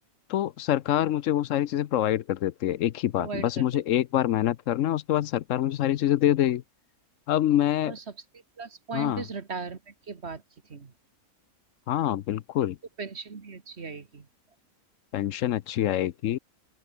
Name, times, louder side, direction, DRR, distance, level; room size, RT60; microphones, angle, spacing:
voice 1, 0.3-6.6 7.3-7.9 8.9-9.2 11.9-12.8 15.1-16.4, left 12 dB, 65° left, 1.0 m, -25 dB
voice 2, 3.2-3.8 7.8-8.0 8.6-10.4 10.7-10.9 13.0-14.3, right 5 dB, 50° right, 1.9 m, -38 dB
open air
omnidirectional pair, 1.5 m